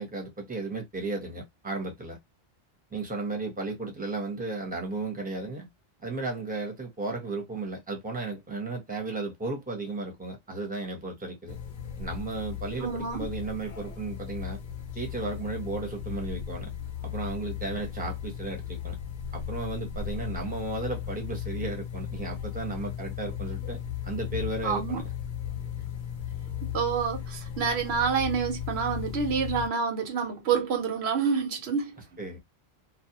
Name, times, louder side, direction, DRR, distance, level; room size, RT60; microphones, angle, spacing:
voice 1, 0.0-2.2 2.9-5.7 6.0-11.6 12.0-14.6 14.9-16.7 17.0-19.0 19.3-25.0 32.2-32.4, right 3 dB, 10° right, 0.7 m, -34 dB
sound 1, 11.5-29.7, left 9 dB, 60° left, 0.6 m, -36 dB
voice 2, 12.8-13.3 24.6-25.0 26.7-32.0, right 6 dB, 85° right, 1.0 m, -28 dB
2.3 x 2.0 x 2.8 m
omnidirectional pair, 1.1 m